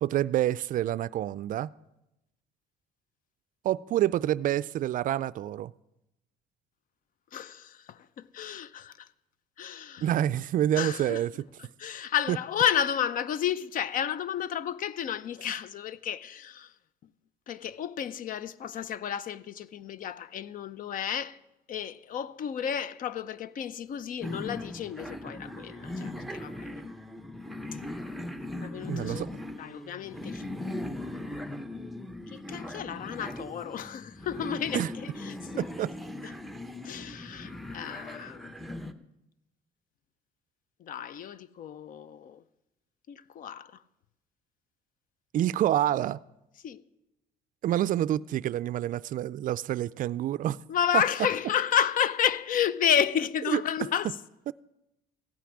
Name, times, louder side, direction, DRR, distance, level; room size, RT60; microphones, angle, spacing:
voice 1, 0.0-1.7 3.6-5.7 10.0-11.5 12.3-12.4 28.9-29.3 34.7-34.9 35.6-35.9 45.3-46.2 47.6-50.6 53.5-53.6 54.5-54.6, right 12 dB, 55° right, 0.4 m, -27 dB
voice 2, 7.3-9.1 9.6-10.1 10.7-11.2 11.6-16.7 17.5-21.4 21.7-26.8 28.6-29.3 29.5-30.9 32.3-35.7 36.8-38.5 40.8-42.4 43.1-43.8 46.6-46.8 50.7-54.1, left 9 dB, 55° left, 0.6 m, -31 dB
sound 1, 24.2-38.9, left 1 dB, ahead, 0.7 m, -39 dB
15.5 x 5.9 x 9.8 m
cardioid pair, 110°, 17 cm